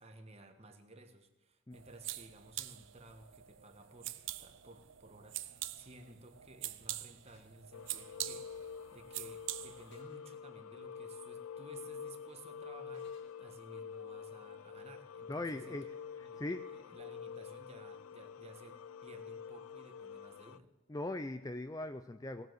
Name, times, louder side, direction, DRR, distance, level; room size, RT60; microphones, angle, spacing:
voice 1, 0.0-4.1 4.4-20.7, right 2 dB, 30° right, 6 dB, 1.4 m, -56 dB
sound 1, 1.7-10.0, right 15 dB, 60° right, 0.6 m, -45 dB
sound 2, 7.2-7.5 9.9-10.3 10.8-10.9 12.9-13.4, left 3 dB, 60° left, 3.2 m, -66 dB
sound 3, 7.7-20.6, left 6 dB, 85° left, 0.4 m, -47 dB
voice 2, 15.3-15.9 16.4-16.6 20.9-22.5, left 2 dB, 15° left, 9 dB, 0.4 m, -40 dB
18.0 x 7.6 x 7.9 m, 1.2 s
head